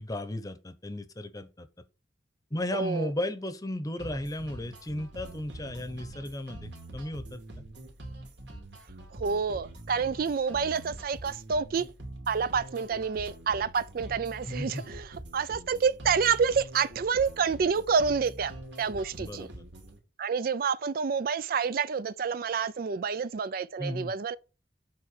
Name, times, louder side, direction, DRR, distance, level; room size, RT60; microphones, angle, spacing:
voice 1, 0.0-1.7 2.5-7.6 14.5-14.8 19.2-19.6 23.8-24.1, left 1 dB, 20° left, 0.8 m, -35 dB
voice 2, 2.7-3.1 9.1-11.9 12.3-19.5 20.2-24.4, right 6 dB, 50° right, 0.4 m, -28 dB
sound 1, 4.0-20.0, right 1 dB, 75° right, 2.6 m, -44 dB
7.6 x 4.5 x 6.4 m
head